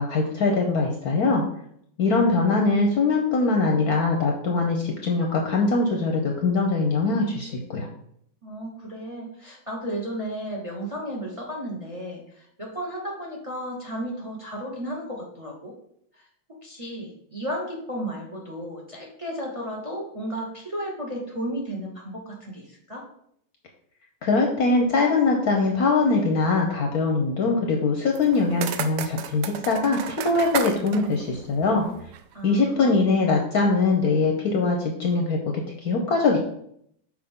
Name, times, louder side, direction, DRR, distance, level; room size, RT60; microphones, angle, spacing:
voice 1, 0.0-1.4 2.0-7.9 24.2-31.8 32.4-35.5 35.8-36.4, left 3 dB, 60° left, 1 dB, 1.0 m, -22 dB
voice 2, 8.4-15.7 16.1-16.2 16.6-23.0 32.3-33.0, equal, 25° right, -1 dB, 0.7 m, -34 dB
sound 1, 28.1-32.3, right 9 dB, 75° right, 1.0 m, -34 dB
6.3 x 4.7 x 3.6 m, 0.70 s
omnidirectional pair, 2.2 m